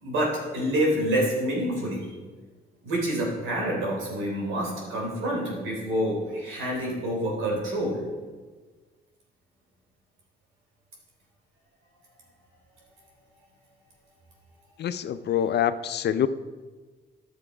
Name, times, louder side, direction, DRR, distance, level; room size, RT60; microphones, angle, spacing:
voice 1, 0.0-2.0 2.8-8.0, equal, 80° right, -2 dB, 3.4 m, -27 dB
voice 2, 14.8-16.3, left 9 dB, 60° left, 13 dB, 0.5 m, -25 dB
10.5 x 6.9 x 4.9 m, 1.4 s
cardioid pair, 90°, 20 cm